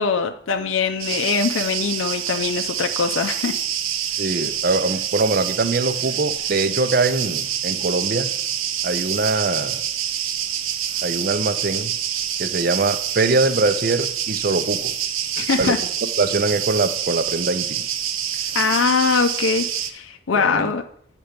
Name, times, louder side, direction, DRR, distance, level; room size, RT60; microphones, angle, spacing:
voice 1, 0.0-3.5 15.4-15.8 18.5-20.8, left 5 dB, 80° left, 5 dB, 0.5 m, -22 dB
sound 1, 1.0-19.9, right 9 dB, 85° right, 0.7 m, -26 dB
voice 2, 4.2-8.3 8.8-9.8 11.0-11.9 12.4-14.9 15.6-15.8 16.2-17.8 20.3-20.7, right 3 dB, 45° right, 11 dB, 0.5 m, -22 dB
9.3 x 4.5 x 5.1 m, 0.65 s
head